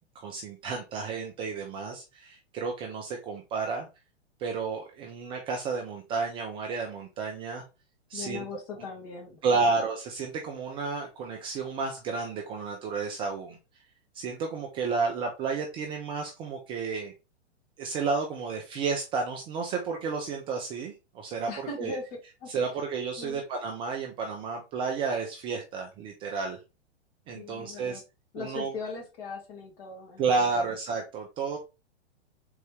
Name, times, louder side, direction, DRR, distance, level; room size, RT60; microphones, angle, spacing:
voice 1, 0.2-3.9 4.4-7.6 8.1-8.4 9.4-13.6 14.1-17.1 17.8-21.5 21.8-22.0 22.5-26.6 27.3-28.0 28.4-28.7 30.2-31.6, right 4 dB, 15° right, 1 dB, 0.3 m, -31 dB
voice 2, 8.1-9.7 21.5-22.0 22.4-22.5 23.2-23.4 27.3-28.0 28.3-30.7, left 4 dB, 50° left, -1 dB, 2.2 m, -40 dB
3.8 x 3.5 x 3.2 m, 0.28 s
figure-of-eight pair, 110°, 35 cm